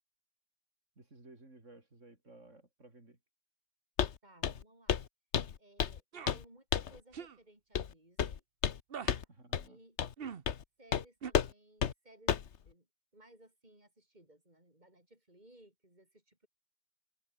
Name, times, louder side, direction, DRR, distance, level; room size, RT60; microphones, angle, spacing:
voice 1, 1.0-3.2 9.3-9.8, right 2 dB, 80° right, 5.5 m, -57 dB
Walk footsteps, 4.0-4.2 4.4-4.6 4.9-5.1 5.3-6.0 6.3-6.4 6.7-7.0 7.8-7.9 8.2-8.8 9.1-9.2 9.5-9.6 10.0-10.1 10.5-10.6 10.9-11.0 11.3-11.5 11.8-11.9 12.3-12.5, left 8 dB, 70° left, 1.3 m, -31 dB
voice 2, 4.2-5.0 5.6-8.4 9.0-9.3 9.6-10.0 10.8-12.9 13.1-16.5, right 1 dB, 35° right, 7.8 m, -61 dB
sound 1, 6.1-6.3 7.1-7.4 8.9-9.1 10.2-10.4 11.2-11.3, right 7 dB, 50° right, 1.2 m, -42 dB
omnidirectional pair, 1.3 m